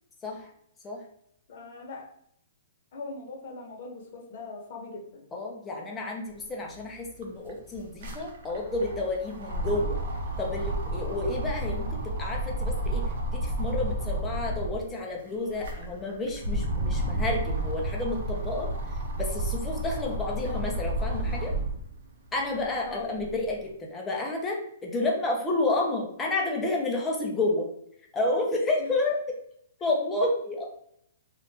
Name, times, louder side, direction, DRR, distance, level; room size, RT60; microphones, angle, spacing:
voice 1, 1.5-2.1 2.9-5.2 22.9-23.1 28.8-28.9, left 3 dB, 55° left, 1 dB, 1.0 m, -40 dB
voice 2, 5.3-10.0 10.4-13.0 13.3-18.7 19.2-21.5 22.3-27.7 28.1-29.2 29.8-30.7, left 2 dB, 15° left, -1 dB, 0.7 m, -30 dB
sound 1, 6.7-6.8 7.1-14.9 15.4-21.9 22.4-23.5, right 1 dB, 65° right, 0.8 m, -31 dB
3.3 x 2.4 x 2.8 m, 0.70 s
hypercardioid pair, 140°, 0 cm